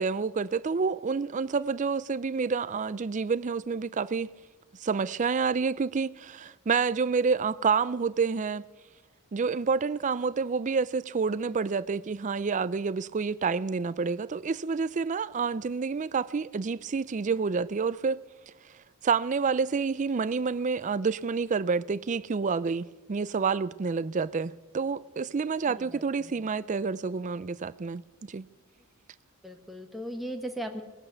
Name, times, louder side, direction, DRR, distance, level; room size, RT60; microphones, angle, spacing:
voice 1, 0.0-4.3 4.8-8.6 9.3-18.2 19.0-28.5, right 5 dB, 35° right, 0.4 m, -28 dB
voice 2, 25.7-26.3 29.4-30.8, equal, ahead, 1.2 m, -38 dB
19.0 x 8.9 x 7.9 m
head